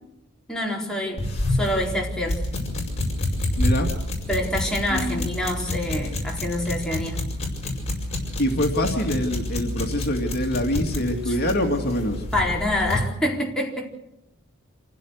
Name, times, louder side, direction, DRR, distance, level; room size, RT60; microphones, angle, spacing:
voice 1, 0.5-2.4 4.3-7.2 11.3-11.4 12.3-13.9, left 1 dB, 5° left, -3 dB, 4.4 m, -26 dB
sound 1, 1.2-13.1, left 1 dB, 30° left, 5.8 m, -28 dB
voice 2, 3.6-3.9 4.9-5.3 8.4-12.2, left 1 dB, 50° left, 2 dB, 2.6 m, -25 dB
28.0 x 16.0 x 6.6 m, 0.83 s
head